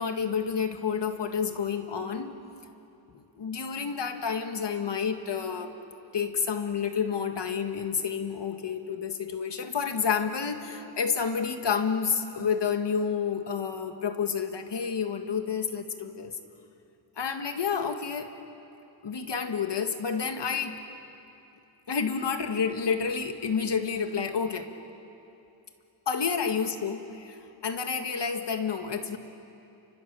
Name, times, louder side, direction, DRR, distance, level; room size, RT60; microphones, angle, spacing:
voice 1, 0.0-2.4 3.4-5.7 6.1-16.4 17.2-18.3 19.0-20.8 21.9-24.7 26.1-29.2, left 6 dB, 70° left, 6 dB, 1.8 m, -29 dB
29.5 x 25.0 x 6.9 m, 2.8 s
wide cardioid pair, 120°, 43 cm